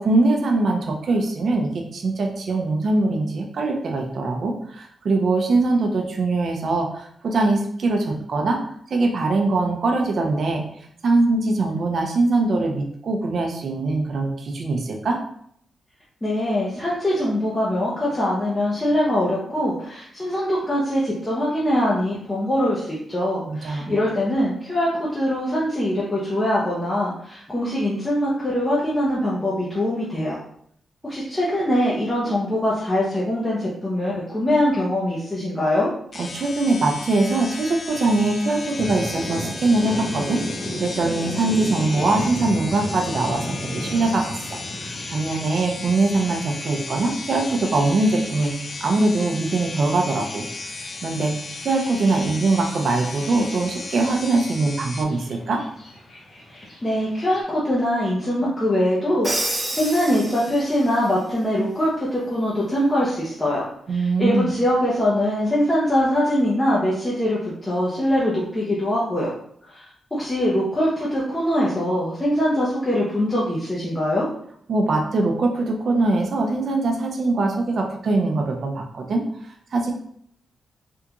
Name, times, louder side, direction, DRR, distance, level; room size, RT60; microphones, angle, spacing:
voice 1, 0.0-8.6 8.9-10.6 11.0-15.2 23.5-23.9 36.2-40.4 40.8-48.5 48.8-50.4 51.0-51.4 51.6-55.6 63.9-64.5 74.7-79.2 79.7-79.9, right 2 dB, 55° right, 2 dB, 0.6 m, -22 dB
voice 2, 16.2-30.4 31.0-35.9 56.8-63.6 63.9-69.3 69.7-69.9 70.1-74.3, left 1 dB, 15° left, -7 dB, 0.7 m, -23 dB
sound 1, 36.1-55.0, left 3 dB, 40° left, 0.3 m, -35 dB
Thunder, 37.9-57.4, left 1 dB, 70° left, 1.3 m, -36 dB
Crash cymbal, 59.2-60.9, right 1 dB, 15° right, 0.7 m, -28 dB
3.5 x 2.4 x 2.9 m, 0.67 s
cardioid pair, 115°, 0 cm